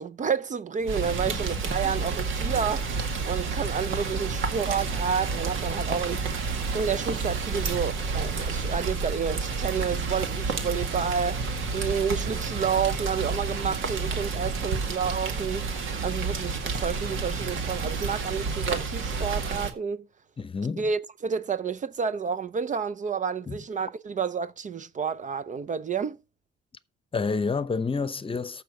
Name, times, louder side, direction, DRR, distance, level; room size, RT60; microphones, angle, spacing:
voice 1, 0.0-6.2 6.5-15.6 16.0-20.1 20.8-26.2, right 6 dB, 40° right, 0.6 m, -30 dB
sound 1, 0.8-18.2, right 2 dB, 55° right, 3.3 m, -43 dB
Rain, 0.9-19.7, right 4 dB, 80° right, 2.0 m, -30 dB
voice 2, 20.4-20.8 23.5-23.6 27.1-28.6, left 4 dB, 25° left, 0.8 m, -29 dB
14.0 x 6.0 x 4.9 m
cardioid pair, 90°, 20 cm